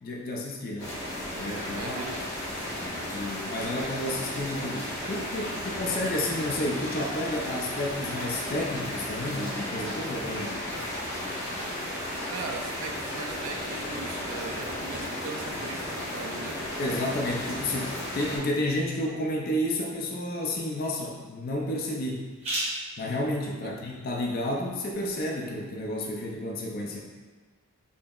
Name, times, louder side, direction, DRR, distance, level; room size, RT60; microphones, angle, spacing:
voice 1, 0.0-0.9 1.4-2.0 3.1-10.6 16.8-22.3 23.0-27.0, left 1 dB, 40° left, -1 dB, 0.4 m, -31 dB
sound 1, 0.8-18.4, left 1 dB, 15° left, 0.8 m, -34 dB
voice 2, 1.8-2.2 12.3-16.6 23.6-23.8, right 4 dB, 65° right, 4 dB, 0.3 m, -40 dB
sound 2, 18.4-25.9, right 1 dB, 30° right, 0.7 m, -41 dB
5.2 x 2.0 x 2.3 m, 1.4 s
head